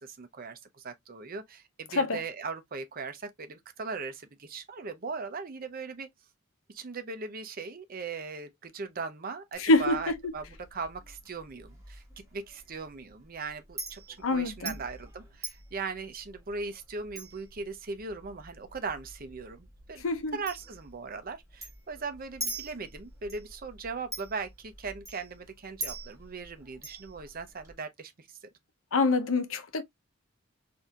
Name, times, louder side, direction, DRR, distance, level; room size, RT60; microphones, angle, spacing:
voice 1, 0.0-6.1 6.7-10.4 10.7-12.0 12.3-20.0 20.3-28.4, right 4 dB, 45° right, 0.6 m, -39 dB
Chink clink, 9.5-27.7, right 2 dB, 15° right, 1.8 m, -45 dB
voice 2, 9.6-10.3 14.2-14.7 20.0-20.4 28.9-29.8, left 2 dB, 80° left, 0.7 m, -26 dB
4.1 x 2.7 x 2.3 m
head